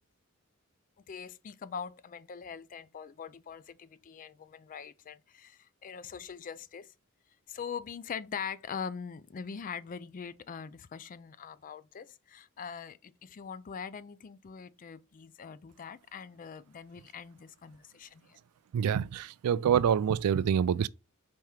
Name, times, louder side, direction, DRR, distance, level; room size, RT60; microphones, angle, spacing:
voice 1, 1.0-6.9 7.5-18.4, left 6 dB, 40° left, 0.3 m, -42 dB
voice 2, 18.7-20.9, right 8 dB, 85° right, 0.3 m, -26 dB
4.3 x 3.5 x 3.2 m
head